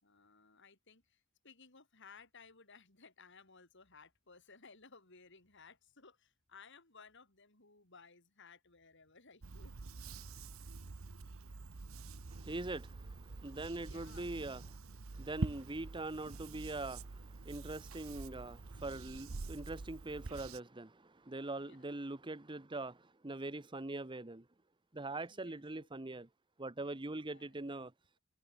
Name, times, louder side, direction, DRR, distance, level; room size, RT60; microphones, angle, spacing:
voice 1, 0.0-9.7 10.6-10.7 13.8-14.3 21.6-21.9 25.2-25.9 27.2-27.5, left 5 dB, 60° left, 5.6 m, -60 dB
sound 1, 9.4-20.6, right 3 dB, 85° right, 0.9 m, -46 dB
voice 2, 12.3-14.6 15.1-24.4 24.9-26.3 26.6-27.9, right 2 dB, 25° right, 1.0 m, -43 dB
head